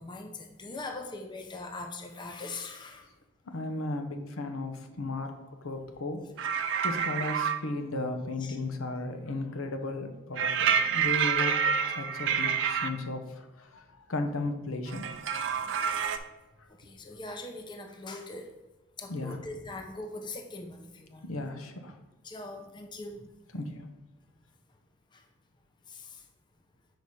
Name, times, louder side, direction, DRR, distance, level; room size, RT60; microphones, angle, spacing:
voice 1, 0.0-3.0 8.4-8.6 16.8-18.5 19.0-21.3 22.2-23.2 25.1-25.2 25.9-26.2, left 2 dB, 20° left, 3 dB, 0.6 m, -41 dB
voice 2, 3.5-6.5 6.8-15.1 16.6-16.7 19.1-19.5 21.2-22.0 23.5-23.9, left 2 dB, 80° left, 6 dB, 0.8 m, -35 dB
sound 1, 6.4-7.6 10.4-12.9 14.9-16.2, right 7 dB, 60° right, 0.5 m, -28 dB
6.5 x 4.8 x 4.2 m, 1.1 s
head